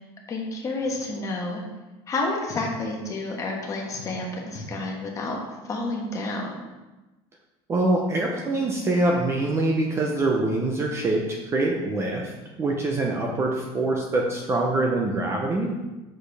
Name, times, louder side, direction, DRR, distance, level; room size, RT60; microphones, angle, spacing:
voice 1, 0.3-1.6 2.1-5.4 5.7-6.6, left 2 dB, 25° left, 0 dB, 1.2 m, -29 dB
voice 2, 7.7-12.2 12.6-15.7, right 2 dB, 20° right, 0 dB, 0.7 m, -24 dB
7.7 x 6.4 x 3.4 m, 1.1 s
cardioid pair, 170°, 14 cm